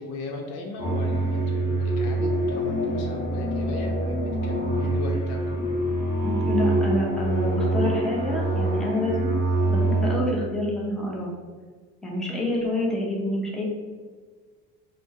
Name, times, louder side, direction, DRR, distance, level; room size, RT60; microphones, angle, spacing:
voice 1, 0.0-5.7, left 2 dB, 80° left, 1 dB, 0.8 m, -36 dB
sound 1, 0.8-10.1, right 1 dB, 15° left, 1.2 m, -25 dB
voice 2, 6.2-9.4 9.7-11.3 12.0-13.6, left 1 dB, ahead, -4 dB, 0.8 m, -27 dB
4.3 x 2.2 x 2.9 m, 1.5 s
supercardioid pair, 90°, 42 cm